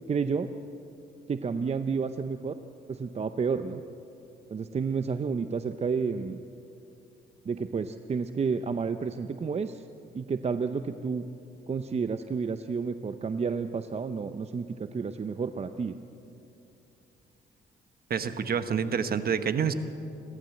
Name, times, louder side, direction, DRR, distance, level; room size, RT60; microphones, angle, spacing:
voice 1, 0.1-0.5 1.3-2.5 2.9-3.8 4.5-6.4 7.4-9.9 10.1-11.3 11.7-16.0, right 5 dB, 30° right, 10 dB, 0.7 m, -30 dB
voice 2, 18.1-19.7, right 7 dB, 50° right, 10 dB, 1.2 m, -27 dB
28.0 x 12.5 x 7.8 m, 2.7 s
cardioid pair, 90°, 20 cm